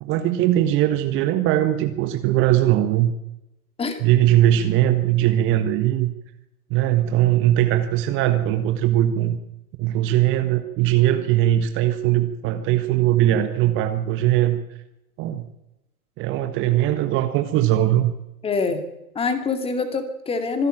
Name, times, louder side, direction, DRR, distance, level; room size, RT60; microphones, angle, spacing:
voice 1, 0.0-3.1 4.0-6.1 6.7-9.4 9.8-14.6 15.2-15.5 16.2-18.1, right 13 dB, 25° right, 8 dB, 1.5 m, -20 dB
voice 2, 18.4-18.8 19.2-20.7, left 4 dB, 15° left, 7 dB, 2.4 m, -24 dB
25.0 x 11.5 x 9.0 m, 0.90 s
hypercardioid pair, 125°, 44 cm